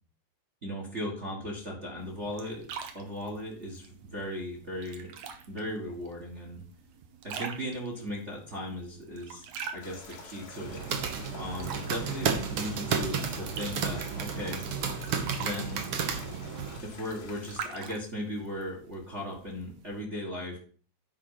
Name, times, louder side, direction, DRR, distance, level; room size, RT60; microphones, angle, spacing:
voice 1, 0.6-2.7 2.9-5.1 5.5-6.6 7.2-9.4 9.7-10.8 11.3-14.6 15.4-15.8 16.8-20.6, equal, 30° right, -1 dB, 1.5 m, -37 dB
sound 1, 2.0-20.0, right 7 dB, 80° right, 2.4 m, -46 dB
sound 2, 9.8-17.6, left 4 dB, 75° left, 3.3 m, -48 dB
sound 3, 10.5-16.8, right 6 dB, 60° right, 1.8 m, -32 dB
10.0 x 4.7 x 5.6 m, 0.43 s
omnidirectional pair, 3.4 m